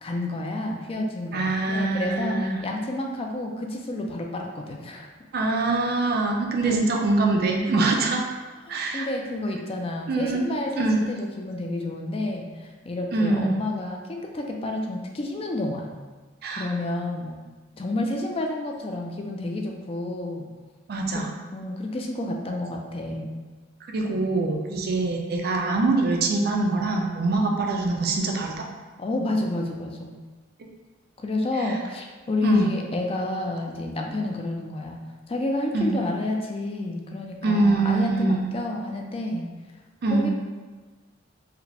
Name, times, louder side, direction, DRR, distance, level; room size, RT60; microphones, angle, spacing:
voice 1, 0.0-5.1 6.6-6.8 7.0-7.1 8.0-8.2 8.7-15.9 16.6-17.4 17.7-20.5 21.1-23.4 29.0-30.2 31.2-35.0 35.3-39.5 40.1-40.3, left 2 dB, 30° left, 1 dB, 0.4 m, -30 dB
voice 2, 1.3-2.6 5.3-8.2 8.7-9.1 10.1-10.4 10.8-11.0 13.1-13.6 16.4-16.7 20.9-21.3 23.9-28.6 31.6-31.7 32.4-32.7 35.7-35.9 37.4-38.5 40.0-40.3, right 3 dB, 55° right, 1 dB, 0.5 m, -24 dB
4.7 x 2.1 x 3.4 m, 1.3 s
head